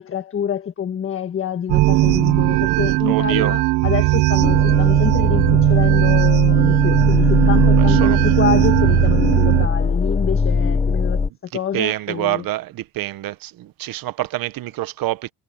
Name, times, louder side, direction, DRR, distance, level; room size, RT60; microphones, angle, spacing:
voice 1, 0.0-11.2 11.5-12.4, left 8 dB, 35° left, 1.6 m, -26 dB
sound 1, 1.7-9.7, right 18 dB, 90° right, 1.0 m, -17 dB
voice 2, 3.0-3.6 7.5-8.2 11.7-15.3, right 16 dB, 60° right, 1.0 m, -26 dB
sound 2, 4.4-11.3, left 4 dB, 15° left, 0.9 m, -21 dB
cardioid pair, 155°, 39 cm